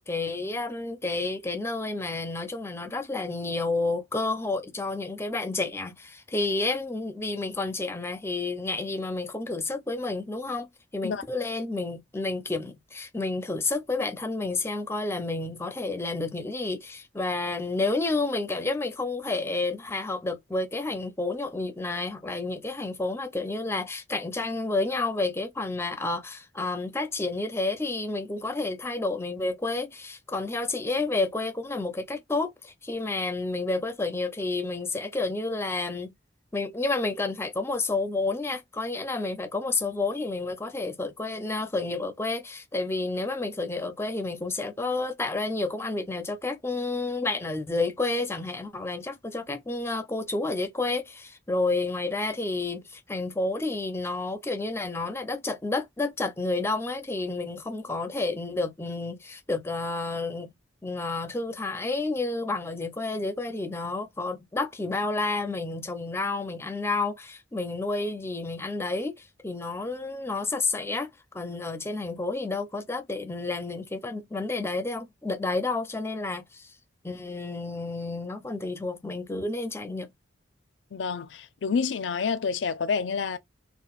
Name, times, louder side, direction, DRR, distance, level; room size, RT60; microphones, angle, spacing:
voice 1, 0.0-36.1 36.5-60.5 60.8-71.1 71.3-76.7 77.0-80.1, left 3 dB, 15° left, 0.5 m, -30 dB
voice 2, 80.9-83.4, left 5 dB, 70° left, 0.5 m, -28 dB
3.8 x 2.1 x 2.3 m
head